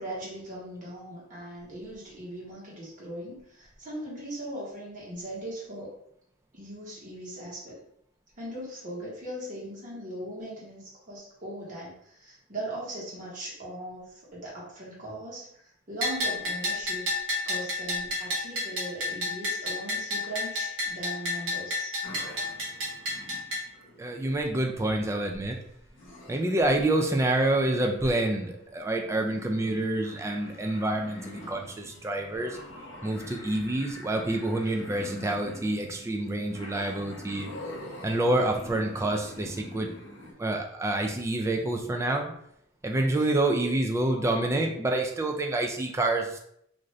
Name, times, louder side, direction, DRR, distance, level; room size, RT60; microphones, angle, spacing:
voice 1, 0.0-5.9 6.5-7.8 8.4-15.6 15.9-17.1 17.4-22.0, right 1 dB, 40° right, -6 dB, 1.2 m, -39 dB
Bell, 16.0-23.6, left 1 dB, 75° right, 0.9 m, -31 dB
sound 1, 22.0-40.3, left 1 dB, 75° left, 0.8 m, -45 dB
voice 2, 24.0-25.6 26.3-32.6 33.0-37.5 38.0-39.9 40.4-42.3 42.8-46.4, right 2 dB, 15° right, 2 dB, 0.3 m, -27 dB
2.6 x 2.4 x 3.1 m, 0.71 s
head